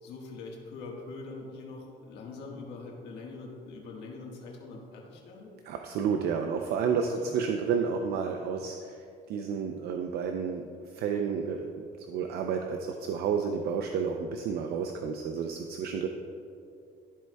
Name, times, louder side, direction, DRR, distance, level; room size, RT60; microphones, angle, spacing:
voice 1, 0.0-5.5 7.1-7.3, left 3 dB, 85° left, -1 dB, 1.4 m, -43 dB
voice 2, 5.7-9.0 9.3-10.7 10.9-16.1, right 6 dB, 75° right, 4 dB, 0.5 m, -31 dB
13.0 x 4.6 x 2.2 m, 2.5 s
cardioid pair, 110°, 17 cm